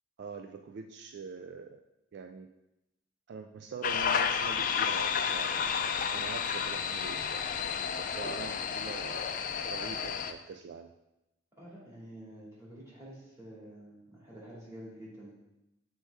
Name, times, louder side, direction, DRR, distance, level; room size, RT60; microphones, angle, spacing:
voice 1, 0.2-1.8 2.1-2.5 3.3-7.4 8.0-9.2 9.7-10.9, right 5 dB, 60° right, 6 dB, 0.3 m, -44 dB
sound 1, 3.8-10.3, left 7 dB, 45° left, 0.4 m, -31 dB
voice 2, 11.6-15.3, right 1 dB, 15° right, -6 dB, 2.3 m, -48 dB
7.6 x 4.4 x 3.4 m, 0.93 s
head